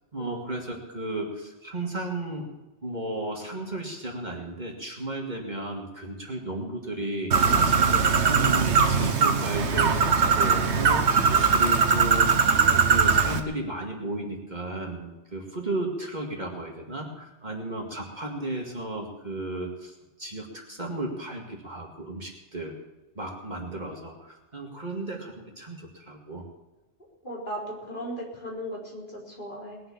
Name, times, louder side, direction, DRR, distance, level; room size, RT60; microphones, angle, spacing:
voice 1, 0.1-2.5 2.8-12.6 12.9-22.7 23.2-26.4, right 2 dB, 40° right, 0 dB, 2.3 m, -34 dB
Bird, 7.3-13.4, right 5 dB, 75° right, 1.3 m, -21 dB
voice 2, 27.2-29.8, equal, 45° left, -4 dB, 4.6 m, -36 dB
20.5 x 7.7 x 7.1 m, 1.1 s
omnidirectional pair, 1.2 m